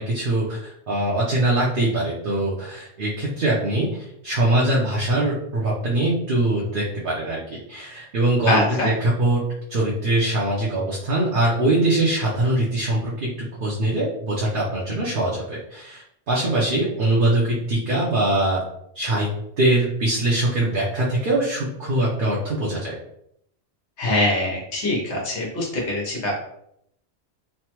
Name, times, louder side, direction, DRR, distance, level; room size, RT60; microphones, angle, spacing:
voice 1, 0.0-8.6 8.8-9.4 9.7-13.3 13.6-18.6 18.9-19.3 19.6-22.9, right 1 dB, 55° right, -5 dB, 0.8 m, -22 dB
voice 2, 8.5-8.9 24.0-26.4, left 2 dB, 80° left, -3 dB, 1.2 m, -23 dB
3.3 x 2.1 x 2.9 m, 0.74 s
omnidirectional pair, 1.2 m